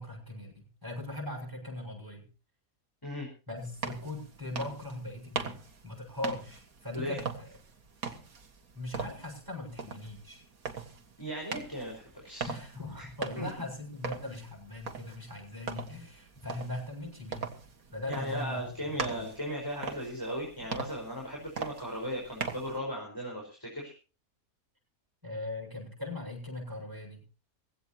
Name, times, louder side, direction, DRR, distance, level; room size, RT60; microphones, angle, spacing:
voice 1, 0.0-2.3 3.5-7.6 8.7-10.5 12.5-17.5 17.9-19.3 25.2-27.2, left 2 dB, 10° right, 0 dB, 7.4 m, -40 dB
sound 1, 3.6-22.8, right 5 dB, 65° right, 2.2 m, -41 dB
voice 2, 11.2-12.5 13.0-13.1 13.4-13.5 18.1-23.9, equal, 15° left, -2 dB, 4.9 m, -37 dB
19.5 x 16.5 x 2.9 m, 0.35 s
omnidirectional pair, 1.6 m